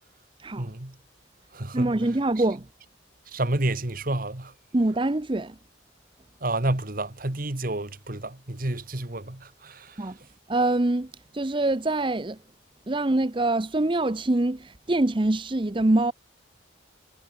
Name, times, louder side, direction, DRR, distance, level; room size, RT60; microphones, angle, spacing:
voice 1, 0.6-0.9 1.5-1.9 3.3-4.5 6.4-10.1, right 1 dB, 50° right, 1.8 m, -30 dB
voice 2, 1.7-2.7 4.7-5.6 10.0-10.2 10.5-12.4 12.9-16.1, right 2 dB, 25° right, 0.7 m, -24 dB
head